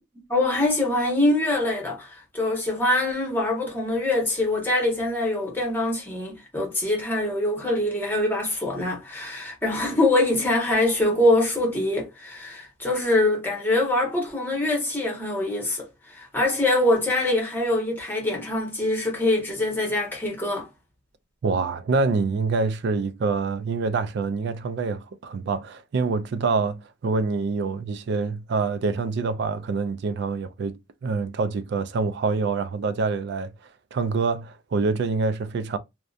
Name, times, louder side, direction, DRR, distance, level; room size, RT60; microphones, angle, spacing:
voice 1, 0.3-15.8 16.1-20.7, left 1 dB, 10° left, 0.9 m, -24 dB
voice 2, 21.4-33.5 33.9-35.8, right 4 dB, 55° right, 0.3 m, -26 dB
2.6 x 2.1 x 2.4 m
head